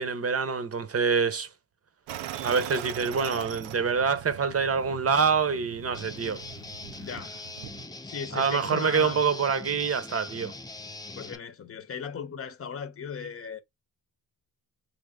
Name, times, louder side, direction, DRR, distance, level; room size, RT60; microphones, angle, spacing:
voice 1, 0.0-1.5 2.4-6.4 8.3-10.5, right 5 dB, 35° right, 0.9 m, -26 dB
sound 1, 2.1-7.8, right 11 dB, 85° right, 0.7 m, -40 dB
Guitar, 5.9-11.4, left 3 dB, 10° left, 0.5 m, -42 dB
voice 2, 7.0-7.3 8.0-9.2 11.2-13.6, left 6 dB, 30° left, 1.0 m, -37 dB
3.5 x 2.8 x 3.8 m
cardioid pair, 95°, 43 cm